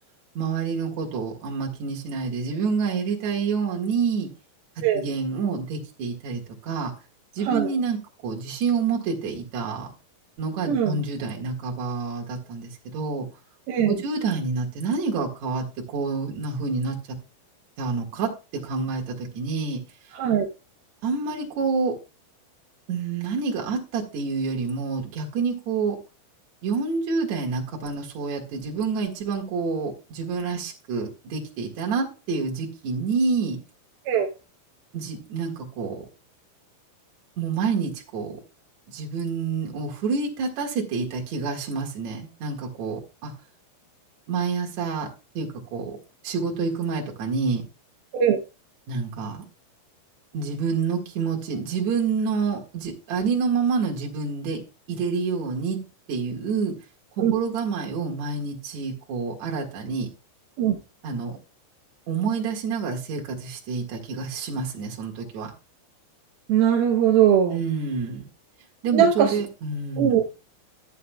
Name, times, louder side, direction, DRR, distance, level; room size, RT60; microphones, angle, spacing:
voice 1, 0.3-4.3 4.9-6.9 7.3-8.0 8.2-9.9 10.4-13.3 13.8-17.0 17.8-18.3 18.6-19.8 21.0-21.9 22.9-26.0 26.6-33.6 34.9-36.1 37.4-38.4 38.9-43.3 44.3-45.1 45.3-46.0 46.2-47.6 48.9-49.5 50.3-54.6 54.9-55.8 56.1-56.7 57.2-60.1 61.0-61.4 62.1-65.5 67.5-68.2 68.8-70.2, right 5 dB, 50° right, 0 dB, 2.3 m, -28 dB
voice 2, 10.7-11.0 13.7-14.0 20.1-20.5 34.1-34.3 48.1-48.4 57.2-57.4 60.6-60.8 66.5-67.6 68.9-69.3 70.0-70.3, right 9 dB, 80° right, 2 dB, 2.1 m, -20 dB
13.0 x 8.3 x 2.3 m, 0.30 s
omnidirectional pair, 5.5 m